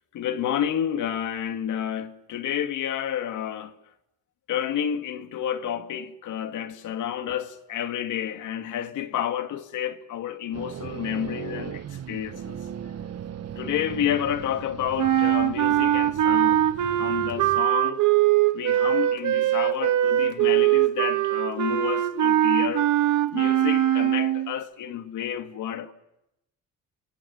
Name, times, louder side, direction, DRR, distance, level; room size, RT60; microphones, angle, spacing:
voice 1, 0.1-3.7 4.5-12.6 13.6-16.6 17.0-18.0 18.5-22.9 23.3-25.9, left 10 dB, 80° left, 2.3 m, -30 dB
sound 1, 10.5-17.6, right 9 dB, 55° right, 1.5 m, -38 dB
sound 2, 15.0-24.5, right 12 dB, 80° right, 2.1 m, -22 dB
28.5 x 21.5 x 9.5 m
cardioid pair, 90°, 30 cm